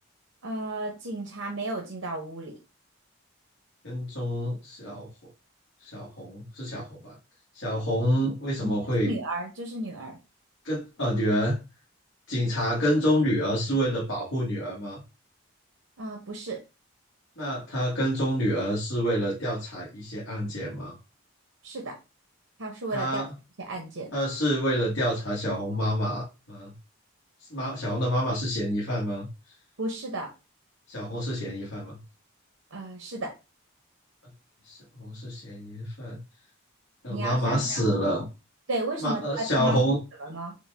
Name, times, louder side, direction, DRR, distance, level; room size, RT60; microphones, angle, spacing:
voice 1, 0.4-2.5 8.6-10.2 16.0-16.6 21.6-21.9 22.6-23.2 23.7-24.1 29.8-30.3 32.7-33.3 37.1-38.0 38.7-39.8 40.2-40.6, right 1 dB, 75° right, 1 dB, 0.8 m, -33 dB
voice 2, 3.8-5.1 5.8-7.1 7.5-9.1 10.6-11.6 12.3-15.0 17.4-20.9 22.9-23.3 24.1-26.7 27.5-29.3 30.9-32.0 34.6-36.2 37.0-38.3 39.0-40.0, equal, 65° left, -6 dB, 1.3 m, -28 dB
5.2 x 2.2 x 3.4 m, 0.29 s
head